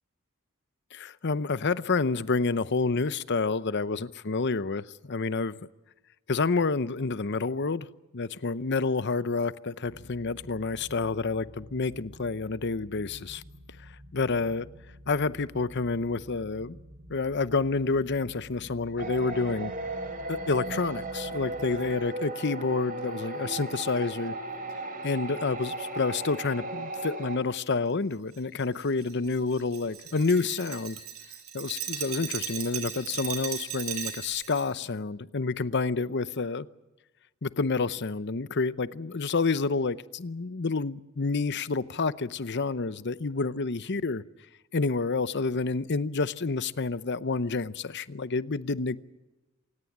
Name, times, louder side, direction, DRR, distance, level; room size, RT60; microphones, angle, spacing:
voice 1, 0.9-5.6 6.3-7.9 8.1-13.4 14.1-14.7 15.1-16.8 17.1-19.7 20.3-24.3 25.0-31.0 31.5-36.7 37.4-44.2 44.7-49.0, left 4 dB, 50° left, 0.7 m, -29 dB
sound 1, 9.9-21.9, equal, 15° right, 4.6 m, -50 dB
sound 2, 19.0-27.4, right 2 dB, 40° right, 3.9 m, -36 dB
Glass, 28.3-34.7, right 9 dB, 75° right, 6.5 m, -37 dB
27.5 x 17.5 x 7.3 m
head